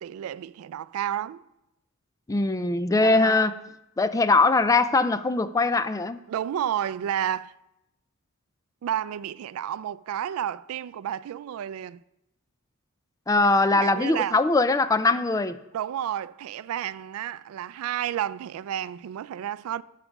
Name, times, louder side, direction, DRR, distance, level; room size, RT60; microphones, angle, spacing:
voice 1, 0.0-1.4 3.0-3.6 6.3-7.5 8.8-12.0 13.7-14.4 15.7-19.8, right 10 dB, 85° right, 0.3 m, -31 dB
voice 2, 2.3-3.5 4.0-6.2 13.3-15.6, left 3 dB, 15° left, 0.3 m, -21 dB
7.1 x 6.5 x 6.0 m
head